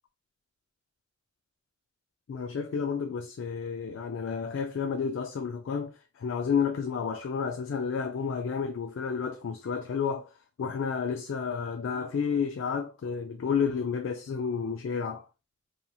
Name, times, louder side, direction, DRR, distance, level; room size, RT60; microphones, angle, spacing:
voice 1, 2.3-15.3, left 6 dB, 70° left, 0.3 m, -31 dB
3.0 x 2.6 x 2.2 m
head